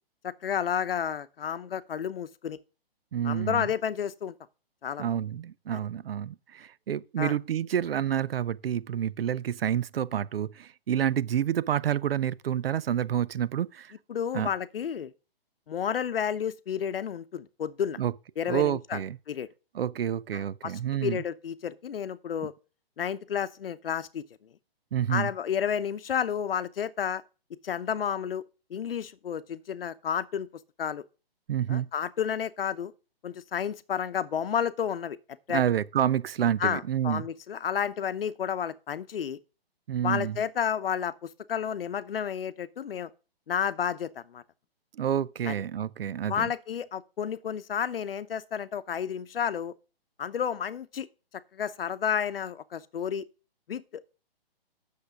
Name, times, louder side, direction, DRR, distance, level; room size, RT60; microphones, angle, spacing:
voice 1, 0.2-2.6 3.2-4.3 4.8-5.1 5.7-5.8 7.2-7.4 14.1-15.1 15.7-18.0 18.4-19.0 19.3-19.5 20.3-20.7 21.0-22.5 23.0-24.2 25.1-27.2 27.6-28.4 28.7-30.5 30.8-31.0 31.7-32.9 33.2-35.2 35.5-35.6 36.6-39.4 40.0-43.1 43.5-44.4 45.5-45.6 46.3-49.7 50.2-51.1 51.5-53.2 53.7-54.2, left 8 dB, 65° left, 0.8 m, -31 dB
voice 2, 3.1-3.7 5.0-13.9 14.3-14.5 18.0-18.1 18.5-19.2 19.7-21.2 22.4-22.5 24.9-25.3 31.5-31.9 35.5-37.3 39.9-40.4 44.9-46.5, right 9 dB, 70° right, 0.6 m, -28 dB
8.2 x 6.8 x 5.0 m
hypercardioid pair, 165°, 30 cm